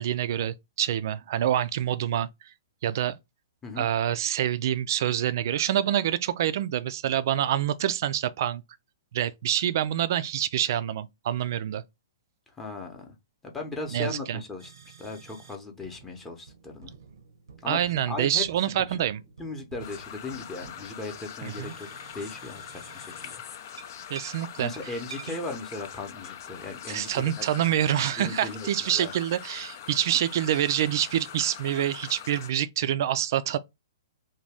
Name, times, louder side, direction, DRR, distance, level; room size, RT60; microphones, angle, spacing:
voice 1, 0.0-2.3 2.8-3.2 3.8-8.6 9.1-11.8 13.9-14.4 17.7-19.2 21.4-21.7 24.1-24.7 26.9-33.6, right 11 dB, 55° right, 0.3 m, -26 dB
voice 2, 12.6-13.1 13.4-16.9 17.6-17.8 18.1-19.0 19.4-21.9 22.1-23.4 24.6-27.5 28.2-29.1, left 3 dB, 15° left, 0.7 m, -37 dB
sound 1, 14.6-15.6 15.8-23.4 23.8-25.6, right 6 dB, 85° right, 0.7 m, -49 dB
sound 2, 19.8-32.5, left 9 dB, 55° left, 0.5 m, -43 dB
2.6 x 2.3 x 3.2 m
hypercardioid pair, 130°, 2 cm